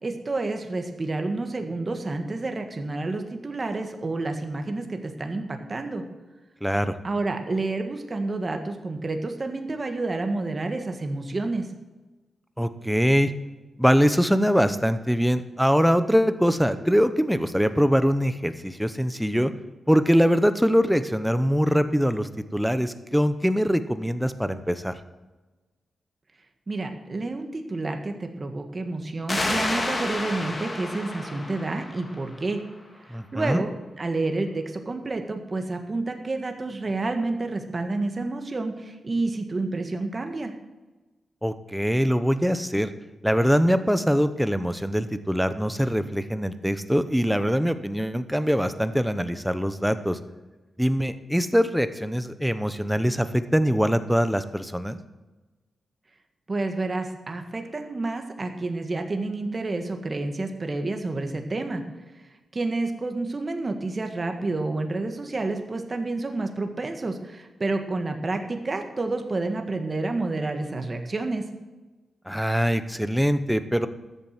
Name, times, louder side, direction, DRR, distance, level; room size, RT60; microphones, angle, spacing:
voice 1, 0.0-6.0 7.0-11.7 26.7-32.6 33.1-33.7 34.0-40.5 56.5-61.8 62.5-71.4, right 2 dB, 30° right, 6 dB, 1.6 m, -29 dB
voice 2, 6.6-7.0 12.6-13.3 13.8-19.5 19.9-25.0 33.1-33.6 41.4-42.9 43.2-50.2 50.8-55.0 72.3-73.9, equal, ahead, 11 dB, 0.8 m, -23 dB
sound 1, 29.3-32.7, left 2 dB, 25° left, 1.9 m, -30 dB
13.5 x 7.6 x 7.6 m, 1.2 s
wide cardioid pair, 125°, 0 cm